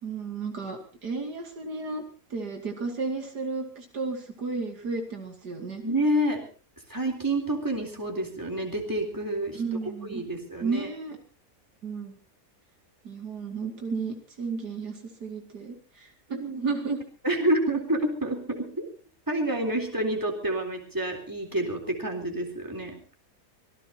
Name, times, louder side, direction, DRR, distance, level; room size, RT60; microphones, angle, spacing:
voice 1, 0.0-2.0 2.3-5.8 9.5-10.2 10.6-11.2 11.8-12.2 13.0-17.0, right 4 dB, 75° right, 3 dB, 3.1 m, -33 dB
voice 2, 5.8-6.4 6.9-10.9 17.2-18.9 19.3-23.0, right 1 dB, 10° right, 1 dB, 3.7 m, -28 dB
25.0 x 17.5 x 2.9 m, 0.37 s
omnidirectional pair, 1.8 m